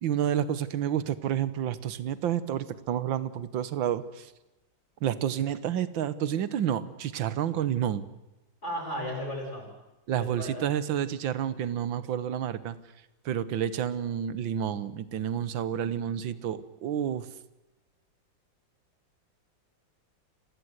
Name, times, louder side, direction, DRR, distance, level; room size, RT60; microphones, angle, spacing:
voice 1, 0.0-4.3 5.0-8.0 10.1-12.8 13.3-17.3, right 9 dB, 80° right, 16 dB, 1.9 m, -29 dB
voice 2, 8.6-9.7 10.2-10.6, equal, 35° left, 0 dB, 7.3 m, -34 dB
29.0 x 16.5 x 8.0 m, 1.0 s
omnidirectional pair, 2.1 m